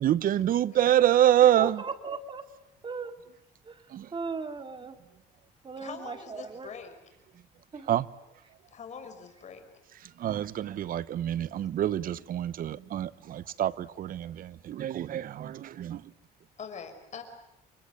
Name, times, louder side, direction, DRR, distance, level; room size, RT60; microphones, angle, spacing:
voice 1, 0.0-1.8 3.9-4.1 7.9-8.1 10.2-16.0, right 11 dB, 55° right, 1.0 m, -26 dB
voice 2, 1.6-2.5 2.8-3.1 3.6-3.8 4.1-5.0 5.6-6.7 7.7-8.0, right 4 dB, 30° right, 2.7 m, -37 dB
voice 3, 5.8-6.9 8.7-9.6 16.6-17.2, left 6 dB, 45° left, 5.6 m, -43 dB
29.5 x 23.5 x 8.3 m
cardioid pair, 110°, 17 cm